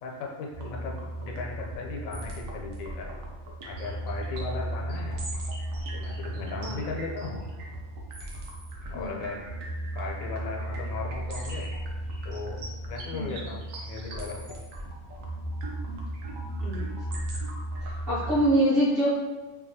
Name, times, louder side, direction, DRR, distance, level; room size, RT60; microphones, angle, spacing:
voice 1, 0.0-3.1 3.6-5.3 5.9-7.5 8.9-9.4 9.9-11.7 12.2-12.6 12.9-14.6 18.3-18.5, left 4 dB, 90° left, 0 dB, 1.0 m, -37 dB
sound 1, 0.5-18.4, right 1 dB, 75° right, 1.0 m, -35 dB
voice 2, 17.8-19.1, right 1 dB, 50° right, -10 dB, 1.0 m, -25 dB
2.9 x 2.3 x 2.6 m, 1.2 s
omnidirectional pair, 1.4 m